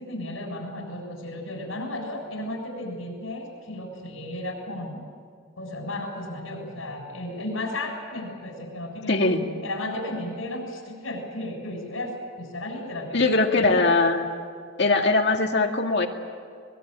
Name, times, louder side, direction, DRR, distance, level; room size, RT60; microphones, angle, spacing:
voice 1, 0.0-5.0 5.6-9.3 9.6-13.9, left 1 dB, 90° left, 2 dB, 7.2 m, -34 dB
voice 2, 9.1-9.4 13.1-14.2 14.8-16.1, left 3 dB, 55° left, 3 dB, 2.2 m, -21 dB
24.0 x 22.0 x 9.1 m, 2.1 s
head